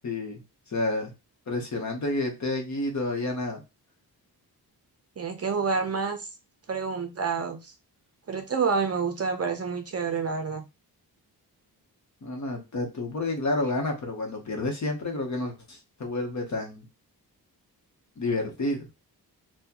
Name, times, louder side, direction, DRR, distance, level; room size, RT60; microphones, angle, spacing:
voice 1, 0.0-0.4 0.7-1.1 1.5-3.6 12.2-16.8 18.2-18.9, left 2 dB, 45° left, 3 dB, 1.0 m, -30 dB
voice 2, 5.2-6.3 6.7-7.7 8.3-10.6, right 5 dB, 40° right, 6 dB, 0.6 m, -28 dB
4.1 x 2.2 x 2.8 m, 0.26 s
wide cardioid pair, 155°, 39 cm